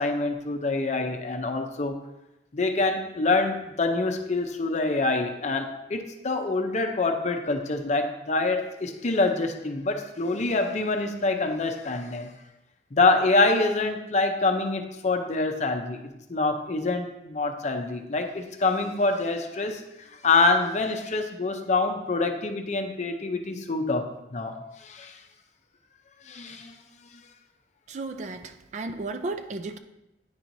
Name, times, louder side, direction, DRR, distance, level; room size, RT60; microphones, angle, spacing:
voice 1, 0.0-2.0 2.5-12.3 12.9-16.0 16.3-19.8 20.2-25.2 26.3-26.8, left 3 dB, 40° left, 5 dB, 0.6 m, -26 dB
voice 2, 27.9-29.8, right 3 dB, 40° right, 8 dB, 0.4 m, -34 dB
9.6 x 4.4 x 2.7 m, 0.92 s
head